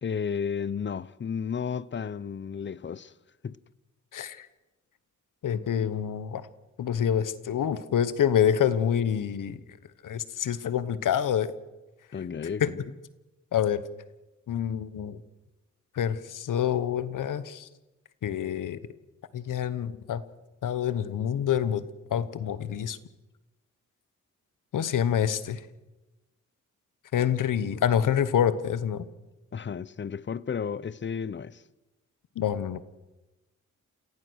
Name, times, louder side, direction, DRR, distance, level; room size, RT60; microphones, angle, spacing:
voice 1, 0.0-3.1 3.4-3.6 12.1-12.8 29.5-31.6, left 6 dB, 35° left, 0.7 m, -33 dB
voice 2, 4.1-4.5 5.4-6.5 6.8-9.6 10.0-11.5 12.6-12.7 13.5-13.8 14.5-15.2 15.9-17.7 18.2-18.8 19.3-20.2 20.6-21.8 22.1-23.0 24.7-25.6 27.1-29.0 32.4-32.8, left 9 dB, 85° left, 1.1 m, -27 dB
28.5 x 16.0 x 6.4 m
cardioid pair, 85°, 31 cm